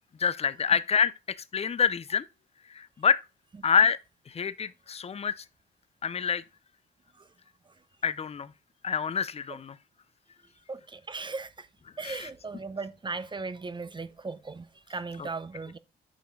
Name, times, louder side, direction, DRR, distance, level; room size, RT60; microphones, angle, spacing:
voice 1, 0.2-2.3 2.7-3.2 3.6-4.0 4.3-5.4 6.0-6.4 8.0-8.5 8.8-9.8 12.0-12.3 15.2-15.3, left 7 dB, 30° left, 0.6 m, -27 dB
voice 2, 10.7-11.7 12.0-15.8, right 4 dB, 25° right, 0.7 m, -37 dB
8.6 x 5.4 x 3.8 m
cardioid pair, 90°, 20 cm